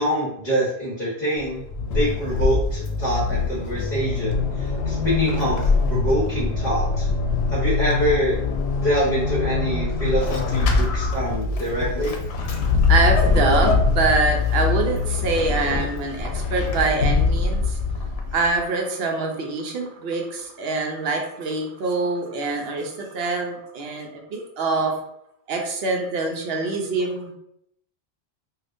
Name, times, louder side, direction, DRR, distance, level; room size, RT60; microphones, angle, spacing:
voice 1, 0.0-1.6 1.9-7.1 7.5-8.4 8.8-12.1, right 1 dB, 35° left, -9 dB, 1.0 m, -25 dB
Vehicle / Accelerating revving vroom / Squeak, 1.4-18.6, left 4 dB, 85° left, 0.9 m, -23 dB
voice 2, 12.9-17.8 18.3-25.0 25.5-27.3, right 3 dB, 75° right, 2 dB, 0.9 m, -25 dB
3.4 x 2.4 x 2.5 m, 0.74 s
omnidirectional pair, 1.1 m